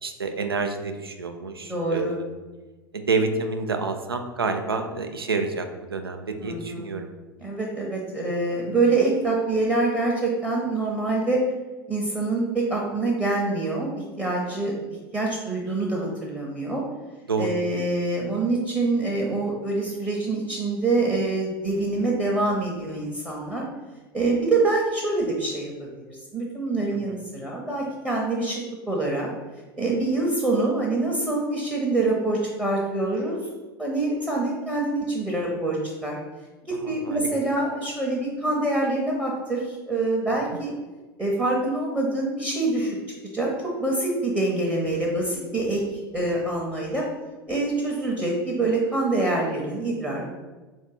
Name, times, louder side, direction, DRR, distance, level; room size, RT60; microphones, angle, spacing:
voice 1, 0.0-2.3 2.9-7.1 17.3-17.5 26.9-27.0 36.7-37.3, right 4 dB, 80° right, 6 dB, 0.4 m, -28 dB
voice 2, 1.7-2.2 6.4-6.9 7.4-11.4 11.9-14.7 15.1-16.8 17.4-23.6 24.1-28.6 28.9-29.3 29.8-33.4 33.8-35.8 36.0-36.1 36.7-40.7 41.2-43.0 43.3-43.5 43.8-45.8 46.1-47.0 47.5-50.3, right 2 dB, 10° right, -2 dB, 0.8 m, -25 dB
3.6 x 2.6 x 4.0 m, 1.2 s
figure-of-eight pair, 80°, 12 cm